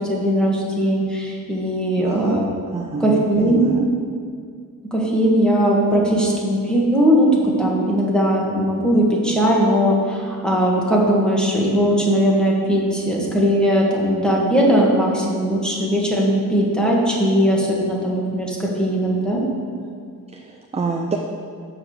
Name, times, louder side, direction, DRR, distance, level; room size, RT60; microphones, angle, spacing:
voice 1, 0.1-2.4 3.0-3.6 4.9-19.4, equal, ahead, -4 dB, 1.8 m, -19 dB
voice 2, 2.0-2.4 2.7-3.9 20.3-21.2, right 4 dB, 20° right, 2 dB, 0.5 m, -26 dB
12.5 x 4.9 x 7.9 m, 2.2 s
wide cardioid pair, 180°, 35 cm